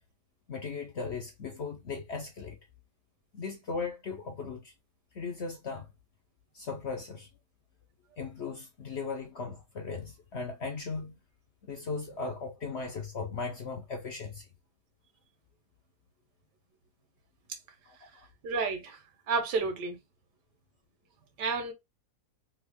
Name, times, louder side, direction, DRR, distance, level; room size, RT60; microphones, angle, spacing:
voice 1, 0.5-2.6 3.3-4.7 5.1-5.9 6.5-7.3 8.2-11.2 11.7-14.5 17.8-18.3, left 4 dB, 60° left, 0.7 m, -37 dB
voice 2, 18.4-20.0 21.4-21.7, right 4 dB, 80° right, 1.6 m, -31 dB
3.4 x 2.4 x 3.4 m
omnidirectional pair, 1.8 m